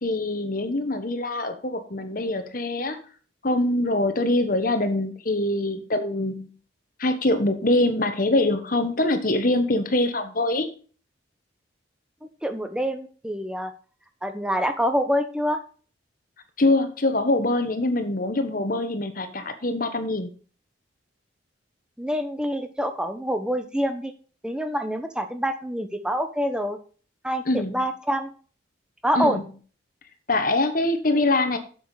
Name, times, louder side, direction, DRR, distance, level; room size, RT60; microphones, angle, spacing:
voice 1, 0.0-3.0 3.4-6.5 7.0-10.7 16.6-20.3 27.4-27.9 29.1-29.4 30.3-31.6, left 2 dB, 45° left, 8 dB, 1.2 m, -24 dB
voice 2, 12.4-13.7 14.2-15.6 22.0-24.1 24.4-26.8 27.2-28.3 29.0-29.4, equal, 5° right, 7 dB, 0.9 m, -26 dB
8.8 x 7.2 x 4.8 m, 0.40 s
head